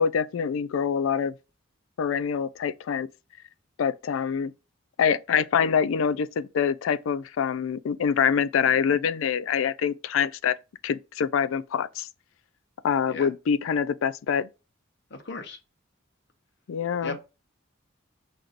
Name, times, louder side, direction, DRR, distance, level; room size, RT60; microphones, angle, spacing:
voice 1, 0.0-1.3 2.0-3.1 3.8-4.5 5.0-10.6 10.8-12.1 12.8-14.5 16.7-17.2, left 7 dB, 75° left, 0.3 m, -25 dB
voice 2, 15.1-15.6 17.0-17.2, left 3 dB, 55° left, 0.9 m, -36 dB
5.9 x 2.6 x 2.5 m
head